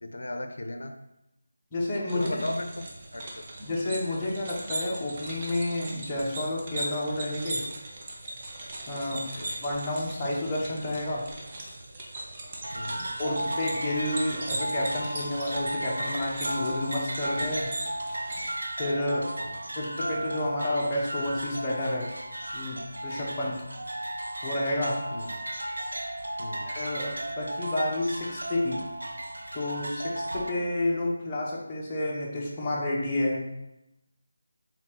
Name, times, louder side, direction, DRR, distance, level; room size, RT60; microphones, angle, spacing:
voice 1, 0.0-0.9 2.1-3.4 9.1-9.6 12.7-13.1 19.1-19.5 25.1-25.3 26.4-26.7, left 1 dB, 75° left, 6 dB, 0.5 m, -37 dB
voice 2, 1.7-2.3 3.6-7.6 8.9-11.3 13.2-17.7 18.8-19.3 19.8-22.1 22.5-23.6 24.4-25.0 26.7-28.8 29.5-33.4, left 1 dB, 15° left, -5 dB, 0.9 m, -30 dB
sound 1, 2.1-18.6, right 2 dB, 30° right, 0.7 m, -39 dB
sound 2, 12.6-30.5, right 1 dB, 85° right, 0.6 m, -35 dB
4.2 x 3.7 x 3.1 m, 0.88 s
figure-of-eight pair, 165°, 0 cm